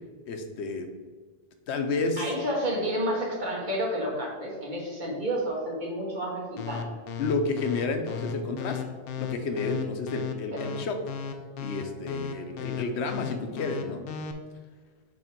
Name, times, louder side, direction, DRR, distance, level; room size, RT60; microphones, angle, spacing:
voice 1, 0.3-0.9 1.7-2.2 7.2-8.8 9.2-11.0 11.6-14.1, left 3 dB, 90° left, 6 dB, 1.0 m, -30 dB
voice 2, 2.2-6.9, equal, 45° right, -3 dB, 1.6 m, -30 dB
sound 1, 6.6-14.3, left 7 dB, 65° left, 0.8 m, -35 dB
6.5 x 3.4 x 4.5 m, 1.5 s
omnidirectional pair, 1.1 m